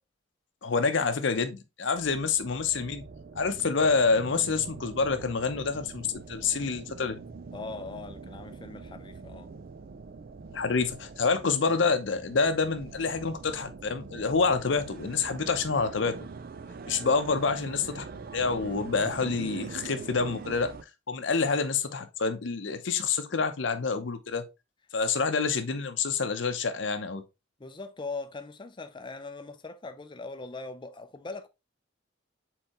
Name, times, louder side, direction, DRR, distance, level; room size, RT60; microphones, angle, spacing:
voice 1, 0.6-3.0 3.4-7.2 10.5-16.1 16.9-18.1 18.3-20.7 21.1-24.4 24.9-27.2, left 4 dB, 70° left, 0.7 m, -27 dB
sound 1, 1.9-20.8, right 4 dB, 50° right, 0.4 m, -43 dB
voice 2, 7.5-9.5 17.0-17.2 27.6-31.5, left 3 dB, 25° left, 0.5 m, -40 dB
4.4 x 4.0 x 3.0 m
head